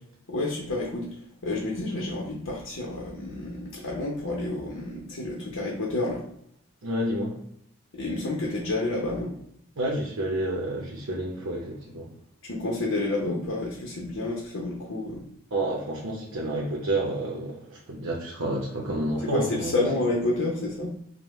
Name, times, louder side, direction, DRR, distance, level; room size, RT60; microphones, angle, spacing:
voice 1, 0.3-6.3 7.9-9.3 12.4-15.3 19.2-21.0, left 2 dB, 90° left, -2 dB, 0.8 m, -29 dB
voice 2, 6.8-7.4 9.8-12.1 15.5-19.9, right 1 dB, 85° right, -3 dB, 0.8 m, -29 dB
5.3 x 2.1 x 3.0 m, 0.72 s
head